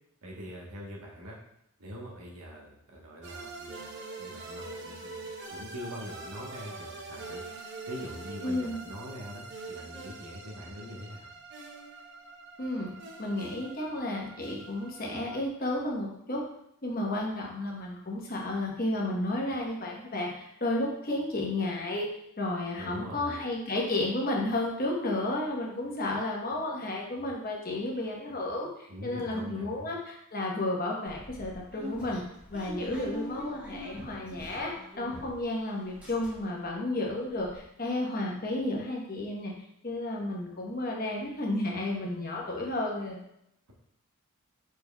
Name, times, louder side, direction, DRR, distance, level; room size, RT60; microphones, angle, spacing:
voice 1, 0.2-1.4 1.8-3.9 4.2-7.4 7.9-11.3 22.8-23.5 28.9-29.9, equal, 85° right, -2 dB, 1.1 m, -43 dB
sound 1, 3.2-15.5, right 3 dB, 50° right, 0.6 m, -44 dB
voice 2, 8.4-8.8 12.6-12.9 13.2-16.4 16.8-22.1 22.4-32.2 32.5-34.7 35.0-39.5 39.8-43.2, left 1 dB, 40° left, -2 dB, 0.9 m, -32 dB
sound 2, 31.1-35.5 35.8-36.7 37.1-37.2 37.3-37.6, left 1 dB, 5° right, 1.2 m, -43 dB
5.2 x 4.5 x 2.2 m, 0.78 s
head